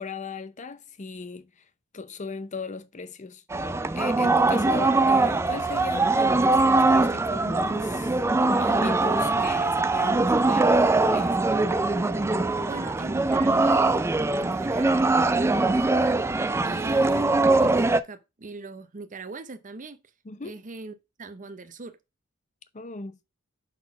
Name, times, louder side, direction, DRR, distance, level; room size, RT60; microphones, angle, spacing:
voice 1, 0.0-1.6 1.9-3.4 4.0-8.2 8.5-11.4 20.2-20.6 22.7-23.2, left 4 dB, 35° left, 0.6 m, -37 dB
sound 1, 3.5-18.0, right 3 dB, 10° right, 0.3 m, -22 dB
voice 2, 12.7-14.0 14.3-16.2 16.6-20.0 20.4-22.0, right 3 dB, 35° right, 0.7 m, -40 dB
6.0 x 4.1 x 5.8 m
head